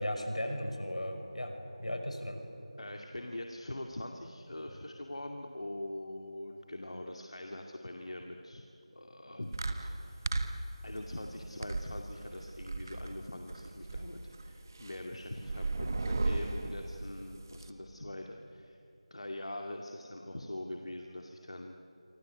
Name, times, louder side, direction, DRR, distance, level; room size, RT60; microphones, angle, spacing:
voice 1, 0.0-1.5 1.8-2.4, equal, 85° left, 5 dB, 5.8 m, -36 dB
voice 2, 2.8-8.6 8.9-10.3 10.8-18.8 19.1-21.9, left 1 dB, 65° left, 2 dB, 2.4 m, -43 dB
sound 1, 9.5-17.7, right 2 dB, 30° right, 1.3 m, -36 dB
28.0 x 26.0 x 8.0 m, 3.0 s
figure-of-eight pair, 170°, 3 cm